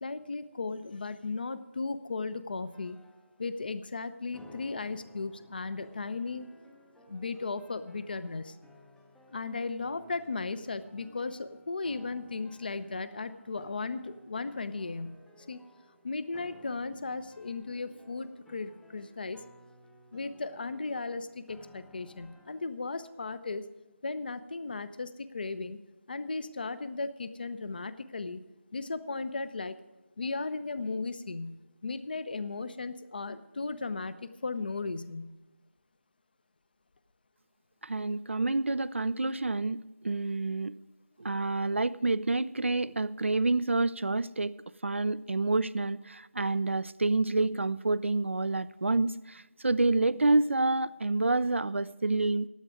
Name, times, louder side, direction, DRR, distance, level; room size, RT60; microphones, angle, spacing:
voice 1, 0.0-3.0 3.4-6.5 7.1-8.6 9.3-15.2 15.5-15.6 16.0-19.4 20.1-23.7 24.0-25.8 26.1-28.4 28.7-29.8 30.2-35.3, left 3 dB, 40° left, 14 dB, 0.7 m, -36 dB
sound 1, 2.7-22.6, equal, ahead, 0.6 m, -57 dB
voice 2, 37.8-40.8 41.2-44.6 44.8-52.5, right 2 dB, 60° right, 15 dB, 0.5 m, -28 dB
16.0 x 10.5 x 5.0 m, 1.1 s
figure-of-eight pair, 160°, 7 cm